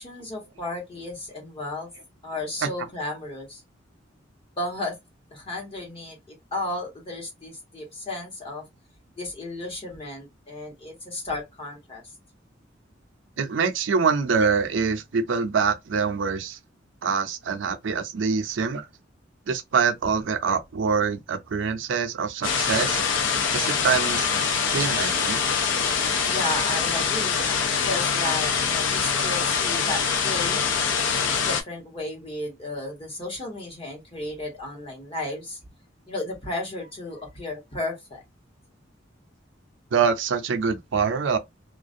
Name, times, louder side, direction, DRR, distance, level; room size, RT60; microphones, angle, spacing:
voice 1, 0.0-1.9 2.2-3.6 4.6-5.0 5.3-8.6 9.2-12.0 26.3-30.7 31.1-35.6 36.1-38.2, left 2 dB, 30° left, 1.1 m, -34 dB
voice 2, 13.4-16.6 17.0-18.9 19.5-23.0 23.5-24.3 24.7-25.4 39.9-41.4, right 5 dB, 75° right, 0.5 m, -25 dB
sound 1, 22.4-31.6, left 6 dB, 85° left, 0.5 m, -24 dB
2.4 x 2.1 x 2.5 m
head